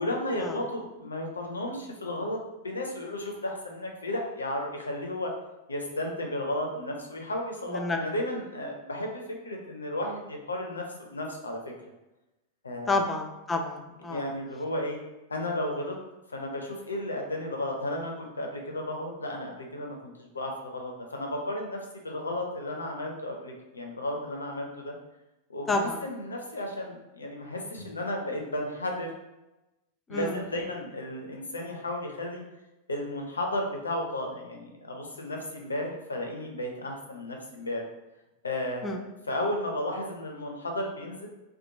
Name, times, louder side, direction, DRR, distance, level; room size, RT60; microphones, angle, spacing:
voice 1, 0.0-5.3 5.7-10.8 11.1-11.6 12.6-12.9 14.1-15.0 15.3-15.9 16.3-21.8 22.0-24.9 25.5-29.1 30.1-32.4 32.9-37.8 38.4-39.0 39.3-41.3, left 1 dB, 75° left, 1 dB, 0.4 m, -33 dB
voice 2, 12.9-14.3 25.7-26.0 30.1-30.4 38.8-39.0, left 2 dB, 15° left, 3 dB, 0.4 m, -29 dB
2.8 x 2.1 x 2.7 m, 0.99 s
figure-of-eight pair, 90°, 0 cm